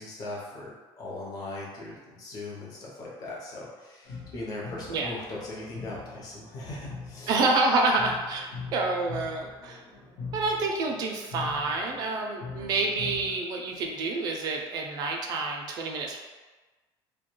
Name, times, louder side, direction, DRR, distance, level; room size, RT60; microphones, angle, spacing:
voice 1, 0.0-7.3, left 2 dB, 40° left, -5 dB, 0.6 m, -39 dB
sound 1, 4.0-13.4, left 4 dB, 75° left, 0.8 m, -42 dB
voice 2, 7.3-9.8 10.3-16.2, right 3 dB, 45° right, 1 dB, 0.3 m, -28 dB
2.2 x 2.2 x 2.9 m, 1.3 s
cardioid pair, 175°, 10 cm